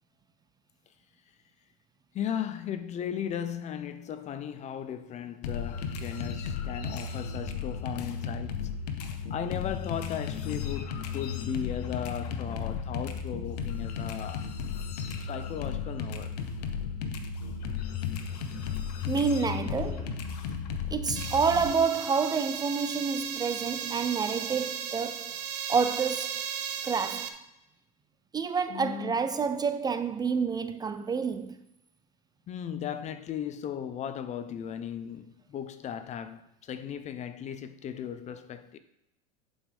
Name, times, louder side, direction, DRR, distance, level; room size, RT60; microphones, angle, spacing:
voice 1, 2.1-8.5 9.3-14.5 15.2-16.4 28.7-29.2 32.5-38.8, left 9 dB, 35° left, 0.7 m, -36 dB
sound 1, 5.4-21.7, left 6 dB, 75° left, 1.1 m, -34 dB
voice 2, 19.1-20.1 20.9-25.4 25.7-26.5 26.8-27.4 28.3-31.6, right 5 dB, 20° right, 0.5 m, -28 dB
sound 2, 21.2-27.3, right 9 dB, 80° right, 0.9 m, -36 dB
11.0 x 5.4 x 3.5 m
hypercardioid pair, 105°, 20 cm